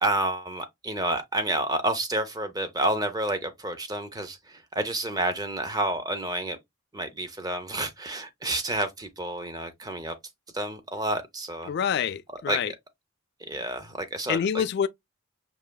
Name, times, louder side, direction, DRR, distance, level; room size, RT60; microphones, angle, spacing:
voice 1, 0.0-6.6 6.9-10.1 10.5-11.7 12.5-12.6 13.4-14.6, right 1 dB, 20° right, 0.6 m, -29 dB
voice 2, 11.7-12.7 14.3-14.9, left 8 dB, 55° left, 0.3 m, -26 dB
5.5 x 2.8 x 2.2 m
head